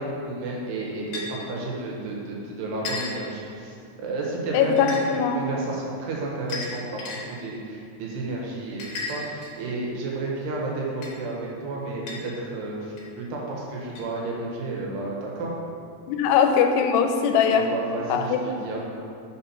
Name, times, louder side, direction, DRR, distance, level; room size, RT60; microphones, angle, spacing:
voice 1, 0.0-7.0 7.3-15.5 17.5-18.9, right 2 dB, 85° right, -3 dB, 3.2 m, -32 dB
sound 1, 1.1-1.3 2.9-3.2 4.8-5.0 6.5-7.2 8.8-9.7 11.0-11.1 12.1-12.2 13.0-13.1 14.0-14.1, left 3 dB, 65° left, 2.4 m, -33 dB
voice 2, 4.5-5.5 16.1-17.7 18.1-18.4, left 7 dB, 85° left, 5 dB, 2.7 m, -21 dB
6.4 x 4.2 x 5.7 m, 2.6 s
omnidirectional pair, 4.7 m